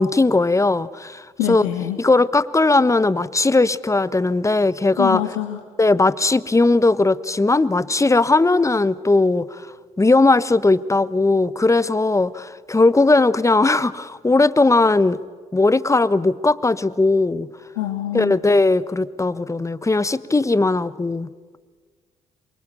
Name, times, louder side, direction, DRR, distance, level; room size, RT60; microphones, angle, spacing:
voice 1, 0.0-1.7 2.0-5.2 5.8-9.7 10.0-15.2 15.5-17.5 18.1-21.3, left 2 dB, 15° left, 17 dB, 1.1 m, -18 dB
voice 2, 1.4-2.0 5.0-5.6 17.7-18.4, left 13 dB, 80° left, 5 dB, 1.6 m, -25 dB
27.0 x 24.0 x 7.0 m, 1.5 s
hypercardioid pair, 45°, 17 cm